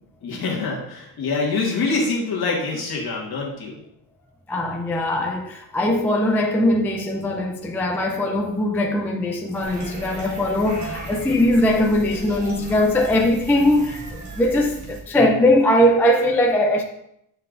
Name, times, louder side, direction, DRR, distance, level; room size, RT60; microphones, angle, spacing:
voice 1, 0.2-3.8, left 3 dB, 55° left, 1.7 m, -25 dB
voice 2, 4.5-16.8, left 1 dB, 5° left, 0.3 m, -20 dB
sound 1, 9.5-15.0, right 2 dB, 35° right, 1.3 m, -36 dB
9.3 x 4.4 x 2.5 m
cardioid pair, 145°, 46 cm